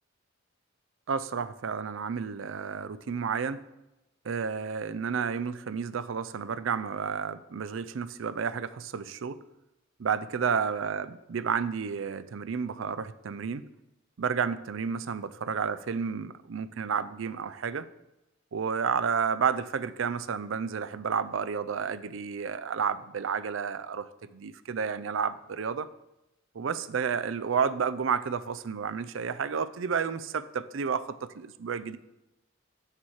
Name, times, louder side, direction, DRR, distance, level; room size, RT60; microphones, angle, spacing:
voice 1, 1.1-3.6 4.2-9.4 10.0-13.7 14.2-17.8 18.5-25.9 26.5-32.0, right 6 dB, 75° right, 14 dB, 0.5 m, -31 dB
7.3 x 6.6 x 4.7 m, 0.92 s
head